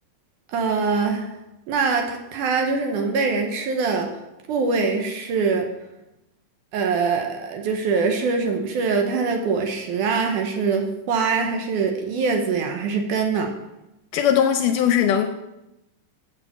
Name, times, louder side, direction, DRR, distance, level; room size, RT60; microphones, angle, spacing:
voice 1, 0.5-1.3 1.7-4.1 4.5-5.7 6.7-13.5, right 4 dB, 70° right, 4 dB, 2.2 m, -23 dB
voice 2, 14.1-15.3, left 9 dB, 80° left, 6 dB, 1.9 m, -19 dB
7.0 x 7.0 x 7.1 m, 0.93 s
omnidirectional pair, 4.1 m